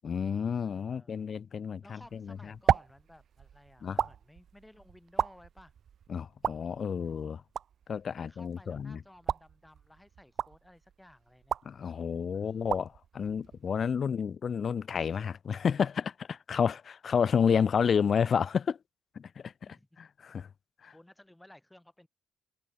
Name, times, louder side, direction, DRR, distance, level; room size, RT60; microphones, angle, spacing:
voice 1, 0.0-2.0 2.3-2.4 3.8-4.0 6.1-7.4 7.9-9.0 11.6-18.8 19.2-19.5 20.0-20.5 20.8-20.9, left 7 dB, 50° left, 0.7 m, -30 dB
voice 2, 0.9-1.3 1.8-5.7 8.1-11.6 12.3-12.7 14.1-14.3 17.5-17.7 19.6-20.0 20.9-22.1, left 1 dB, 10° left, 4.3 m, -57 dB
sound 1, 2.0-14.2, right 8 dB, 60° right, 1.3 m, -36 dB
cardioid pair, 90°, 0 cm